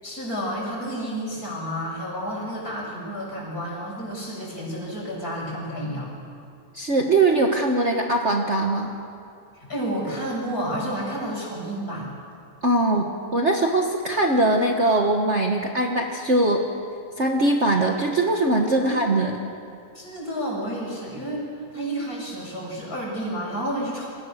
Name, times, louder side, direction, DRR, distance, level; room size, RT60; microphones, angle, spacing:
voice 1, 0.0-6.1 9.6-12.1 18.8-19.1 19.9-21.5 21.7-24.1, equal, 25° left, -3 dB, 7.4 m, -30 dB
voice 2, 6.7-8.9 12.6-16.6 17.2-19.4, right 2 dB, 60° right, 2 dB, 0.7 m, -21 dB
29.5 x 23.0 x 6.6 m, 2.5 s
omnidirectional pair, 3.7 m